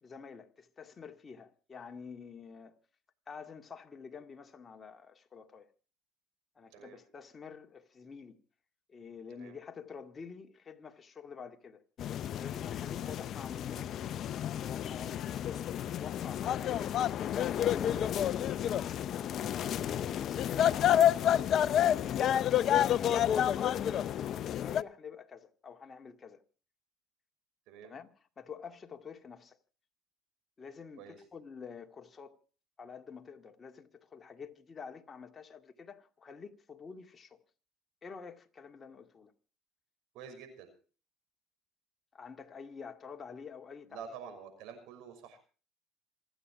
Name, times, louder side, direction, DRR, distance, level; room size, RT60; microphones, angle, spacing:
voice 1, 0.0-2.8 3.3-5.7 6.6-8.4 8.9-11.8 12.2-13.9 14.5-17.0 17.2-18.4 19.2-26.4 27.8-29.6 30.6-32.4 32.8-37.4 38.0-39.3 42.1-44.0, left 5 dB, 30° left, 2.2 m, -48 dB
sound 1, 12.0-24.8, left 10 dB, 55° left, 0.7 m, -30 dB
voice 2, 40.1-40.7 43.8-45.4, right 7 dB, 75° right, 6.2 m, -49 dB
27.0 x 9.2 x 4.9 m
supercardioid pair, 90°, 0 cm